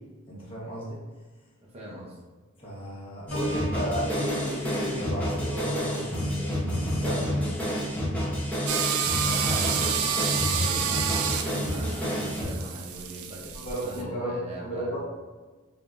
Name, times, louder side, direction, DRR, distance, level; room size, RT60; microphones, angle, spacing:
voice 1, 0.3-1.0 2.6-7.3 13.5-15.0, equal, 25° left, -6 dB, 1.0 m, -34 dB
voice 2, 1.7-2.2 9.2-15.0, right 1 dB, 30° right, -4 dB, 0.6 m, -40 dB
Piano, 3.3-8.9 9.4-9.7, right 1 dB, 75° left, 0.8 m, -42 dB
sound 1, 3.3-12.4, equal, 10° left, 0.7 m, -29 dB
sound 2, 8.7-14.0, right 7 dB, 85° right, 0.4 m, -29 dB
3.7 x 3.3 x 2.5 m, 1.3 s
head